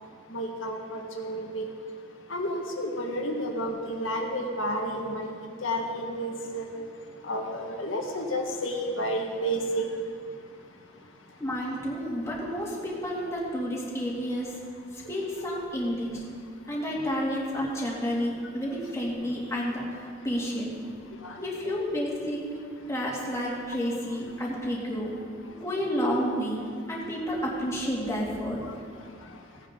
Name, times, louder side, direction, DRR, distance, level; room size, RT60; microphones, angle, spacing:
voice 1, 0.3-1.6 2.3-6.7 7.2-9.8 21.2-21.4, equal, 85° left, 2 dB, 1.6 m, -31 dB
voice 2, 11.4-14.6 14.9-16.2 16.7-20.7 21.4-22.4 22.9-25.1 25.5-26.6 26.9-28.6, equal, 15° left, -5 dB, 2.4 m, -30 dB
17.0 x 9.1 x 3.8 m, 2.1 s
head